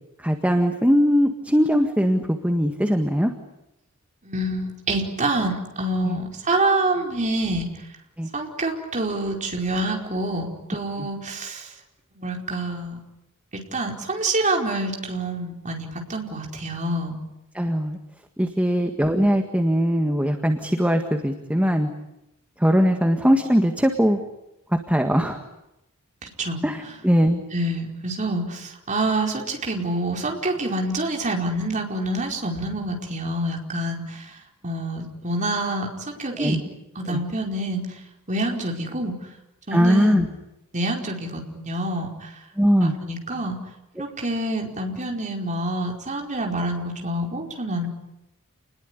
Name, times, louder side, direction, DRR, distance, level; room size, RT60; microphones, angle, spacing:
voice 1, 0.2-3.3 6.0-6.2 8.2-8.3 17.5-18.0 18.4-21.9 22.6-24.2 24.9-25.4 26.6-27.4 36.4-36.6 37.1-37.2 39.7-40.3 42.6-42.9, equal, 5° right, 5 dB, 1.8 m, -20 dB
voice 2, 4.2-7.6 8.3-11.7 12.2-13.0 13.5-17.1 18.5-18.8 26.4-26.6 27.5-34.2 34.6-36.6 36.9-37.9 38.3-39.2 39.7-40.2 40.7-42.1 42.8-43.6 44.0-47.9, right 1 dB, 35° right, 1 dB, 4.8 m, -27 dB
29.5 x 20.5 x 9.8 m, 0.91 s
head